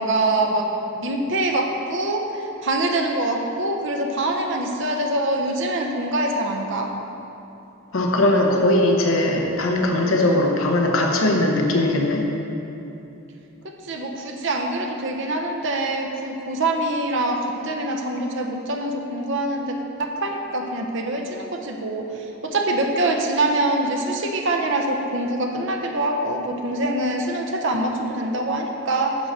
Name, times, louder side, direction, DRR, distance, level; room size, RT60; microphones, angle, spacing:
voice 1, 0.0-6.9 13.9-22.1 22.4-29.2, right 2 dB, 60° right, 3 dB, 0.8 m, -24 dB
voice 2, 7.9-12.2, left 1 dB, 70° left, 1 dB, 0.8 m, -19 dB
10.5 x 3.9 x 6.6 m, 2.8 s
head